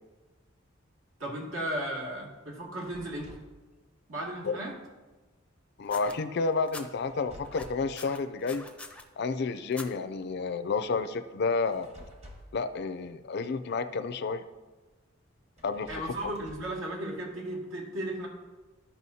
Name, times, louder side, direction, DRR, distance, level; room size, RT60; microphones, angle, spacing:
voice 1, 1.2-3.4 4.1-4.8 15.9-18.3, right 1 dB, 75° right, -2 dB, 2.2 m, -35 dB
sound 1, 2.8-3.6 7.0-8.0 11.7-12.6 15.6-16.8, equal, 30° right, 1.2 m, -50 dB
voice 2, 5.8-8.7 9.2-11.9 12.5-14.4 15.6-15.9, left 4 dB, 55° left, 11 dB, 0.4 m, -30 dB
sound 2, 5.9-6.9 7.4-9.0 9.7-9.9 10.8-10.9, left 2 dB, 5° left, 0.5 m, -44 dB
13.5 x 5.7 x 2.8 m, 1.2 s
head